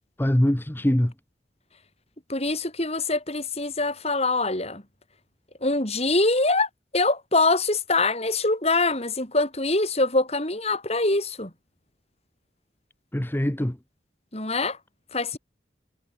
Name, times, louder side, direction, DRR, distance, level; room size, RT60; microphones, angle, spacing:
voice 1, 0.2-1.1 13.1-13.8, equal, 10° left, 0.8 m, -23 dB
voice 2, 2.3-4.8 5.6-11.5 14.3-14.8 15.1-15.4, left 2 dB, 35° left, 6.0 m, -24 dB
head